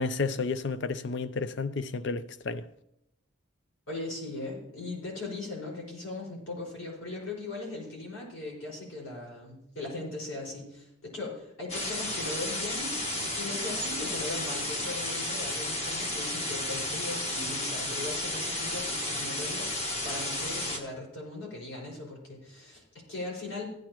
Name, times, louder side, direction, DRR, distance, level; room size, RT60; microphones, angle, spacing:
voice 1, 0.0-2.6, left 4 dB, 60° left, 0.5 m, -31 dB
voice 2, 3.9-19.7 20.0-23.8, left 2 dB, 85° left, 5.2 m, -39 dB
sound 1, 11.7-20.8, left 1 dB, 30° left, 1.4 m, -32 dB
15.5 x 9.6 x 3.0 m
head